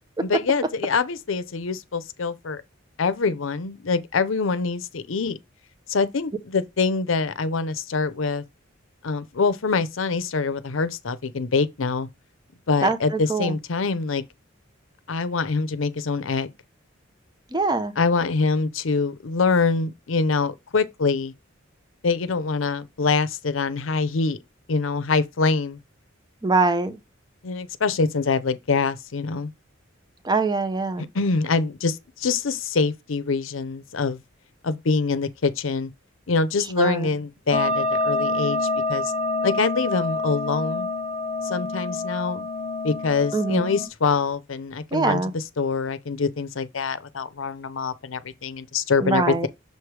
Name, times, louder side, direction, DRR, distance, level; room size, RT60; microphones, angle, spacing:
voice 1, 0.2-2.6 3.0-5.4 5.9-8.4 9.0-12.1 12.7-14.2 15.1-16.5 18.0-21.3 22.0-24.4 24.7-25.8 27.4-29.5 31.1-34.2 34.6-35.9 36.3-39.1 39.4-40.9 41.4-42.5 42.8-49.5, left 4 dB, 80° left, 0.7 m, -24 dB
voice 2, 17.5-17.9 26.4-27.0 30.2-31.1 36.8-37.1 43.3-43.7 44.9-45.3 49.0-49.5, right 3 dB, 20° right, 0.7 m, -23 dB
sound 1, 37.5-43.9, left 2 dB, 30° left, 1.0 m, -27 dB
6.7 x 3.3 x 4.7 m
head